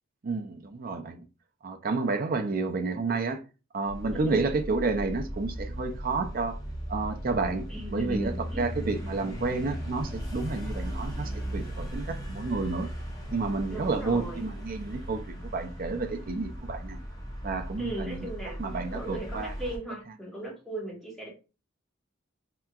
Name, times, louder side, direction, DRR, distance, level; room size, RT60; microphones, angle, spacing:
voice 1, 0.2-1.2 1.6-3.4 3.7-6.6 6.9-12.9 13.3-17.0 17.4-19.5, right 3 dB, 45° right, 0.4 m, -30 dB
sound 1, 3.9-19.8, equal, 15° left, 0.7 m, -37 dB
voice 2, 7.7-8.7 13.7-14.4 17.8-18.6 18.9-21.3, right 1 dB, ahead, 1.2 m, -37 dB
3.3 x 2.8 x 2.3 m
head